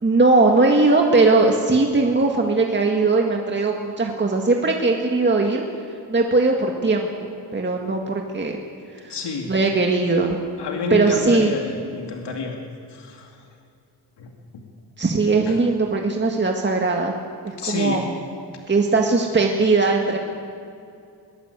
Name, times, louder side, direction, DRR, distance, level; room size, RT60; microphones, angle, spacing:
voice 1, 0.0-5.6 6.1-8.6 9.0-9.2 9.5-10.4 10.9-11.5 15.0-17.1 17.4-18.0 18.7-20.2, right 3 dB, 25° right, 1 dB, 1.9 m, -19 dB
voice 2, 9.1-9.5 10.6-12.5 12.9-13.3 14.2-14.3 15.5-15.6 17.6-18.0, left 4 dB, 85° left, 1 dB, 2.6 m, -28 dB
21.5 x 20.0 x 8.3 m, 2.5 s
wide cardioid pair, 125°, 40 cm